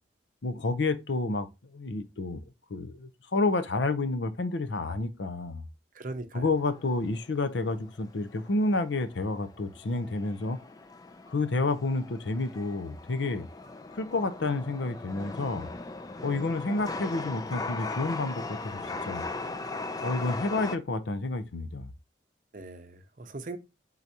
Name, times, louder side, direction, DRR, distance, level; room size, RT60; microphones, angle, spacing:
voice 1, 0.4-2.4 2.7-5.6 6.3-10.6 11.3-13.5 13.9-15.7 16.2-18.8 19.1-19.2 20.0-21.9, left 3 dB, 70° left, 0.6 m, -30 dB
voice 2, 5.9-6.5 22.5-23.6, right 2 dB, 45° right, 0.7 m, -39 dB
Chatter / Subway metro underground, 6.5-20.8, left 3 dB, 20° left, 0.3 m, -39 dB
4.6 x 3.9 x 2.7 m
head